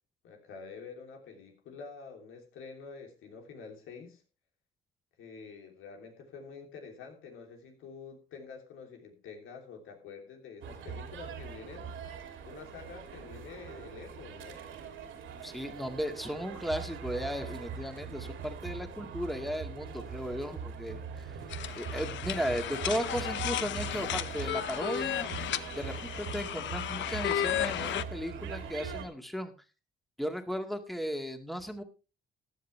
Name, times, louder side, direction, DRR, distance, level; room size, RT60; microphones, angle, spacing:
voice 1, 0.2-4.2 5.2-12.0 12.4-14.6, left 5 dB, 90° left, 3 dB, 3.2 m, -47 dB
sound 1, 10.6-29.1, right 6 dB, 80° right, 3.0 m, -42 dB
voice 2, 15.4-21.4 21.7-29.5 30.2-31.8, equal, ahead, 6 dB, 2.0 m, -36 dB
sound 2, 21.5-28.0, left 11 dB, 70° left, 0.6 m, -34 dB
15.0 x 10.5 x 3.4 m, 0.33 s
cardioid pair, 90°, 20 cm